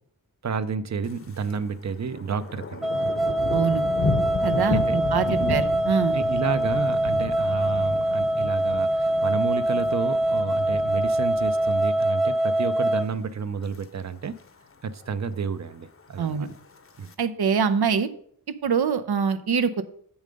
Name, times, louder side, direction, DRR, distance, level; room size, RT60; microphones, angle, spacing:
voice 1, 0.4-2.9 4.7-5.0 5.3-5.6 6.1-14.4 14.8-16.5 17.0-17.1, right 5 dB, 45° right, 0.6 m, -31 dB
Thunder, 1.0-1.6 1.9-12.2 12.6-13.0 13.4-13.8 14.1-14.2 14.4-14.5 14.9-15.4 16.2-17.1, left 4 dB, 35° left, 0.7 m, -33 dB
sound 1, 2.8-13.1, right 1 dB, ahead, 0.6 m, -24 dB
voice 2, 3.5-3.8 4.4-6.2 16.2-16.5 17.2-18.1 18.6-19.8, right 6 dB, 85° right, 0.8 m, -24 dB
7.6 x 7.1 x 5.2 m
wide cardioid pair, 105°, 37 cm